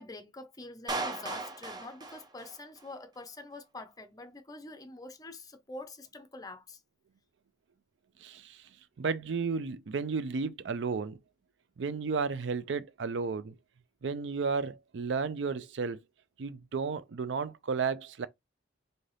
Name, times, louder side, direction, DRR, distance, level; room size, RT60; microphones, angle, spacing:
voice 1, 0.0-6.8, left 2 dB, 20° left, 0.6 m, -46 dB
Clapping, 0.9-2.9, right 3 dB, 20° right, 0.5 m, -37 dB
voice 2, 8.2-8.6 9.0-11.2 11.8-13.6 14.0-16.0 16.4-18.3, right 5 dB, 75° right, 0.4 m, -33 dB
3.3 x 2.7 x 3.9 m
head